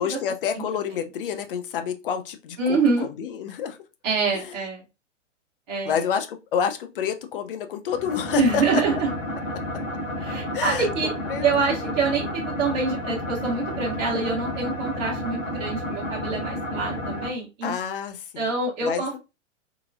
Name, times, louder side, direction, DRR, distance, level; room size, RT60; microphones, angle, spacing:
voice 1, 0.0-3.8 4.3-4.6 5.8-8.8 10.5-10.9 11.3-11.9 17.6-18.5 18.8-19.2, left 7 dB, 45° left, 8 dB, 0.5 m, -29 dB
voice 2, 2.6-3.1 4.0-4.8 5.7-6.0 8.4-9.1 10.2-11.1 11.4-17.8 18.4-19.2, right 4 dB, 25° right, -4 dB, 0.8 m, -25 dB
sound 1, 7.9-17.3, left 1 dB, 80° left, 1.0 m, -31 dB
3.1 x 2.2 x 2.4 m, 0.27 s
figure-of-eight pair, 105°, 38 cm